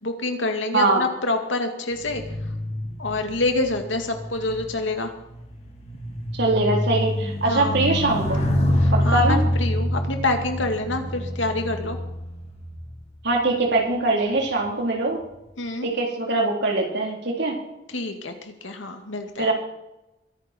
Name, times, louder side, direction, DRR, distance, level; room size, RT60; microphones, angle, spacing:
voice 1, 0.0-2.2 3.0-5.1 7.5-7.8 8.8-12.0 15.6-15.9 17.9-19.5, left 2 dB, 85° left, 5 dB, 2.4 m, -27 dB
sound 1, 1.9-13.6 14.3-14.6, left 1 dB, 35° left, 2.6 m, -27 dB
voice 2, 6.4-8.4 9.1-9.4 13.2-15.2 15.8-17.6 19.4-19.5, right 2 dB, 65° right, 0 dB, 3.9 m, -22 dB
22.0 x 11.0 x 4.5 m, 0.91 s
head